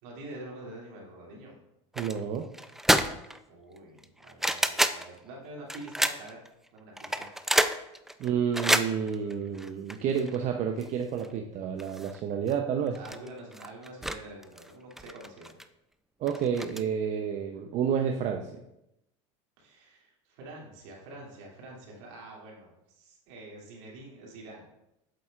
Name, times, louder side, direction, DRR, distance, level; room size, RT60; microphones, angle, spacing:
voice 1, 0.0-1.6 3.5-6.4 6.7-7.2 12.9-15.5 19.6-24.7, right 2 dB, 70° right, -2 dB, 2.6 m, -46 dB
sound 1, 1.9-2.2 2.5-3.4 3.8-5.1 5.7-6.5 7.0-10.4 10.8-10.9 11.2-11.3 11.8-12.2 12.5-12.6 12.9-14.2 14.4-15.6 16.3-16.8, right 1 dB, ahead, 0.4 m, -28 dB
voice 2, 2.0-2.5 8.2-13.0 16.2-18.6, right 7 dB, 50° right, 4 dB, 0.7 m, -30 dB
7.9 x 7.7 x 2.4 m, 0.85 s
supercardioid pair, 95°, 16 cm